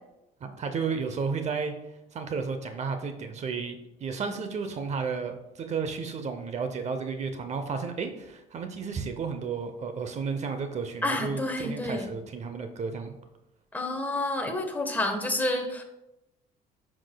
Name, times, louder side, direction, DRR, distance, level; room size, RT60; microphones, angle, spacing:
voice 1, 0.4-1.7 2.1-13.1, right 5 dB, 40° right, 7 dB, 0.8 m, -32 dB
voice 2, 11.0-12.1 13.7-15.8, left 1 dB, 10° left, 3 dB, 1.2 m, -29 dB
9.8 x 6.1 x 2.3 m, 0.91 s
cardioid pair, 110°, 17 cm